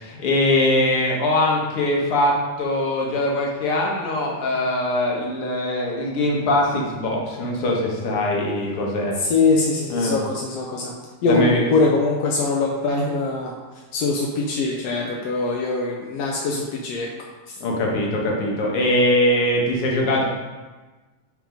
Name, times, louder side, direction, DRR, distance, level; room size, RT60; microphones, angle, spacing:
voice 1, 0.0-9.1 9.9-10.2 11.3-11.6 17.6-20.2, left 1 dB, 55° left, -2 dB, 1.9 m, -22 dB
voice 2, 9.2-10.9 11.2-13.5 13.9-17.1 17.5-17.6, left 3 dB, 75° left, -2 dB, 1.5 m, -22 dB
6.2 x 5.1 x 5.1 m, 1.3 s
omnidirectional pair, 3.6 m